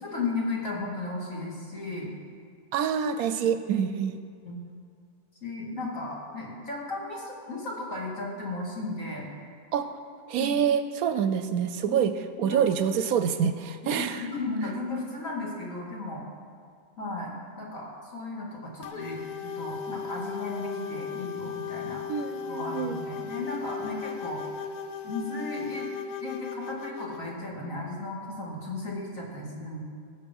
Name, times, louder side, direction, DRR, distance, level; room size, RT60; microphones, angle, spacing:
voice 1, 0.0-2.1 4.5-4.6 5.4-9.3 10.4-10.5 11.9-12.0 12.4-12.6 13.8-16.2 17.0-19.2 19.6-22.0 22.5-24.6 25.0-25.9 26.2-29.8, left 2 dB, 55° left, -3 dB, 2.8 m, -35 dB
voice 2, 2.7-4.2 9.7-9.9 10.3-14.3 22.1-23.0, right 8 dB, 70° right, 10 dB, 1.0 m, -26 dB
sound 1, 18.8-27.2, left 6 dB, 75° left, 1.2 m, -36 dB
18.5 x 7.1 x 5.4 m, 2.2 s
omnidirectional pair, 1.6 m